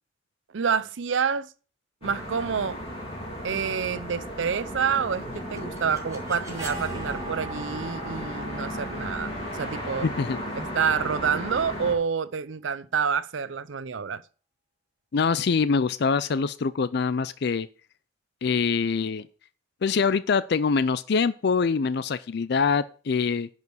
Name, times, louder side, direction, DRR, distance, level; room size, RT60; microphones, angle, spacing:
voice 1, 0.5-1.5 2.0-2.8 3.4-10.1 10.6-14.2, right 6 dB, 85° right, 0.6 m, -28 dB
sound 1, 2.0-11.9, equal, 30° left, 3.6 m, -35 dB
sound 2, 5.1-11.0, right 2 dB, 20° right, 3.4 m, -42 dB
voice 2, 10.0-10.4 15.1-17.7 18.4-19.3 19.8-23.5, left 5 dB, 60° left, 0.4 m, -24 dB
10.5 x 5.0 x 6.2 m
head